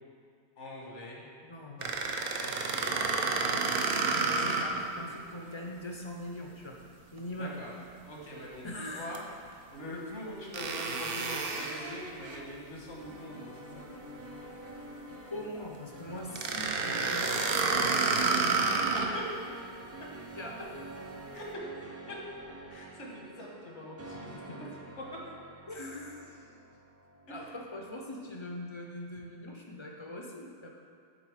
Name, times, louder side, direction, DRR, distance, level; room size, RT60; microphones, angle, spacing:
voice 1, 0.6-1.2 2.5-3.2 4.3-5.1 7.4-7.7 8.0-8.7 9.0-9.2 9.7-13.8 18.7-19.3 20.5-20.7 21.3-21.7 22.1-22.2 22.7-24.7 25.0-25.1 27.3-27.5, left 1 dB, 85° left, -3 dB, 1.6 m, -43 dB
voice 2, 1.4-2.0 4.1-6.8 7.1-7.6 8.6-9.1 15.3-18.6 20.4-20.7 25.7-26.5 27.3-30.7, left 1 dB, 40° left, 0 dB, 0.4 m, -42 dB
sound 1, 1.8-4.9 5.3-5.4 9.1-9.2 10.5-12.4 16.4-19.2, right 4 dB, 60° right, 0.7 m, -30 dB
sound 2, 13.0-28.2, right 2 dB, 20° right, 0.4 m, -47 dB
7.4 x 3.8 x 4.9 m, 2.2 s
omnidirectional pair, 1.2 m